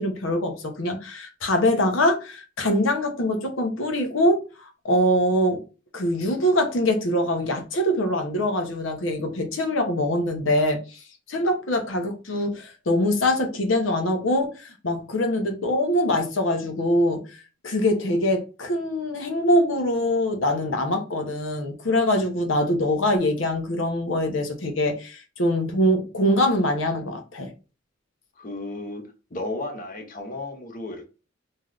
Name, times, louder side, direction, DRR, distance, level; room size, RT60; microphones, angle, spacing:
voice 1, 0.0-4.4 4.8-5.6 5.9-11.0 11.3-17.2 17.6-27.5, left 1 dB, 80° left, 0.8 m, -23 dB
voice 2, 28.4-29.0 29.3-31.1, left 2 dB, 45° left, 0.7 m, -33 dB
3.2 x 2.7 x 2.4 m
head